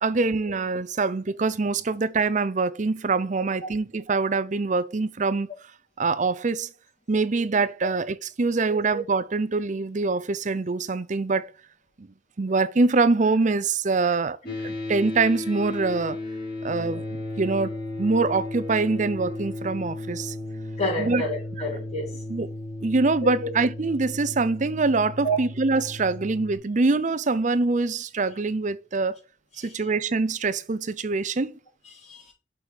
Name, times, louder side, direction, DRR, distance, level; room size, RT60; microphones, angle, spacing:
voice 1, 0.0-5.5 6.0-6.7 7.1-11.5 12.0-12.1 12.4-14.4 14.6-16.2 16.6-20.3 21.0-21.2 22.3-22.5 22.8-29.2 29.6-31.5, right 3 dB, 45° right, 0.6 m, -24 dB
sound 1, 14.5-26.6, left 2 dB, 60° left, 4.1 m, -35 dB
voice 2, 20.8-22.2 23.2-23.5 25.2-25.4 29.6-29.8 31.8-32.3, equal, 35° left, 3.8 m, -30 dB
6.3 x 5.4 x 4.7 m
head